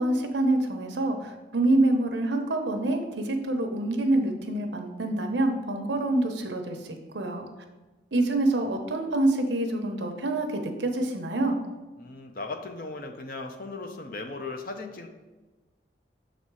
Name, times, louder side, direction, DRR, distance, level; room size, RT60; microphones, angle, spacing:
voice 1, 0.0-7.5 8.1-11.6, right 2 dB, 75° right, 5 dB, 0.9 m, -26 dB
voice 2, 12.0-15.1, left 3 dB, 50° left, 5 dB, 0.7 m, -37 dB
6.6 x 4.2 x 4.7 m, 1.2 s
head